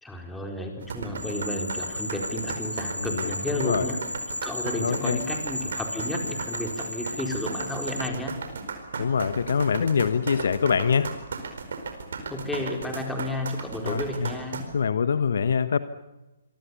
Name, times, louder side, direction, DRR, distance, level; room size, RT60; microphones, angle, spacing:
voice 1, 0.0-4.0 4.3-8.3 12.3-14.6, left 1 dB, 5° left, 2 dB, 4.3 m, -32 dB
sound 1, 0.8-14.6, right 5 dB, 60° right, 4.6 m, -35 dB
sound 2, 1.2-8.1, left 2 dB, 90° left, 2.1 m, -35 dB
voice 2, 4.8-5.2 9.0-11.1 13.9-14.3 14.7-15.8, left 6 dB, 60° left, 13 dB, 1.1 m, -24 dB
27.0 x 23.5 x 7.1 m, 1.0 s
figure-of-eight pair, 130°, 0 cm